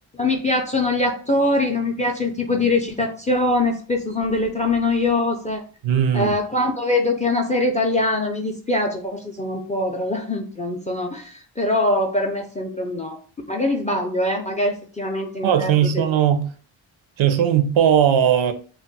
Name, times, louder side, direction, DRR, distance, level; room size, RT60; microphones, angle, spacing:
voice 1, 0.2-5.6 6.1-13.2 13.5-16.0, left 2 dB, 15° left, 0.3 m, -23 dB
voice 2, 5.8-6.3 15.4-16.5 17.2-18.5, right 9 dB, 65° right, 0.5 m, -18 dB
2.3 x 2.1 x 3.9 m
cardioid pair, 85°, 50 cm